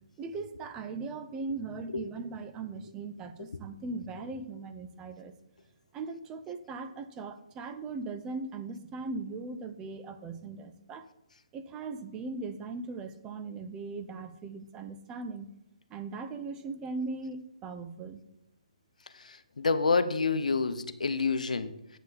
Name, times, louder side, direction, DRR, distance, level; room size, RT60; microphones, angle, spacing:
voice 1, 0.2-5.3 5.9-11.1 11.5-15.5 15.9-18.2, right 3 dB, 15° right, 9 dB, 0.6 m, -39 dB
voice 2, 19.2-22.0, left 4 dB, 80° left, 12 dB, 0.8 m, -28 dB
9.5 x 8.0 x 4.0 m, 0.88 s
figure-of-eight pair, 145°, 4 cm